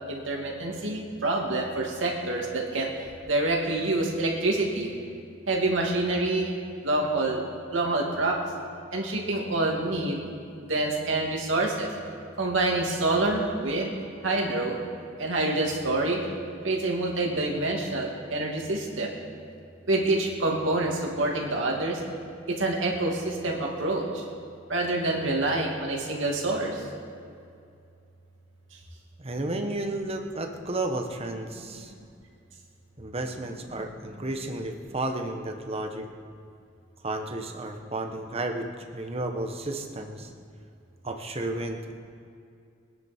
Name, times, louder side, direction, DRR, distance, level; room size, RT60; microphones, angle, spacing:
voice 1, 0.1-2.9 3.3-4.9 5.5-6.6 6.8-7.4 7.7-8.4 8.9-11.9 12.4-13.9 14.2-14.8 15.2-16.2 16.6-19.1 19.9-22.0 22.5-24.2 24.7-26.8, right 2 dB, 85° right, -1 dB, 2.7 m, -27 dB
voice 2, 29.2-31.9 33.0-36.1 37.0-40.3 41.0-41.9, right 2 dB, 30° right, 4 dB, 1.2 m, -32 dB
23.5 x 10.0 x 4.5 m, 2.4 s
head